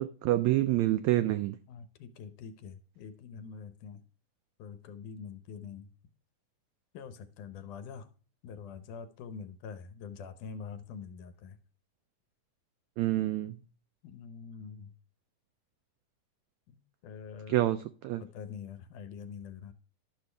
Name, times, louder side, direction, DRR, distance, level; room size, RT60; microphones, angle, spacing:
voice 1, 0.0-1.5 13.0-13.6 17.5-18.2, right 15 dB, 90° right, 1.5 m, -27 dB
voice 2, 1.7-4.0 4.6-5.9 6.9-8.1 8.4-11.6 14.0-14.9 16.7-17.6 18.2-19.7, left 6 dB, 75° left, 2.3 m, -45 dB
12.0 x 6.5 x 3.3 m
omnidirectional pair, 3.7 m